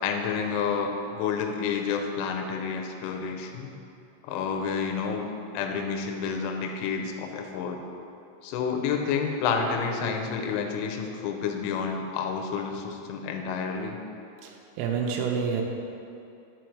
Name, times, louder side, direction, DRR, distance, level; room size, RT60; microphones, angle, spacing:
voice 1, 0.0-3.7 4.2-5.3 5.5-7.8 8.4-14.0, left 6 dB, 80° left, 3 dB, 2.6 m, -29 dB
voice 2, 14.4-15.6, right 6 dB, 85° right, 0 dB, 2.6 m, -28 dB
6.4 x 4.4 x 4.6 m, 2.6 s
omnidirectional pair, 5.3 m